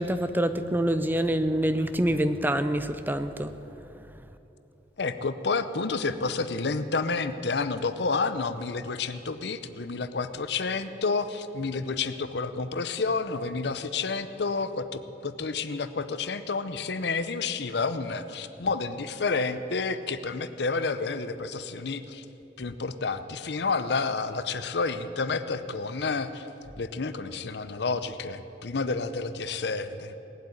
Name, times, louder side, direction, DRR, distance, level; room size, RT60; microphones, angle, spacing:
voice 1, 0.0-3.5, right 1 dB, 10° right, 10 dB, 0.6 m, -26 dB
voice 2, 5.0-22.2 22.6-26.5 26.8-30.1, left 4 dB, 70° left, 12 dB, 0.7 m, -30 dB
18.5 x 8.1 x 9.8 m, 3.0 s
head